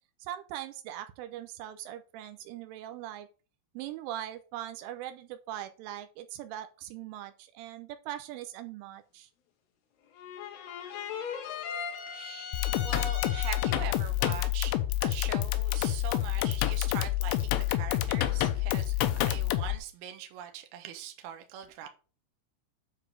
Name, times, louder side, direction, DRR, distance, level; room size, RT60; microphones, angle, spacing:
voice 1, 0.2-3.3 3.7-9.3, right 12 dB, 85° right, 3.2 m, -41 dB
sound 1, 10.2-14.0, left 7 dB, 65° left, 2.9 m, -39 dB
voice 2, 12.1-14.7 15.0-19.0 19.3-21.9, right 9 dB, 65° right, 2.6 m, -42 dB
sound 2, 12.5-19.8, left 14 dB, 85° left, 3.3 m, -28 dB
9.5 x 4.0 x 6.4 m
omnidirectional pair, 5.7 m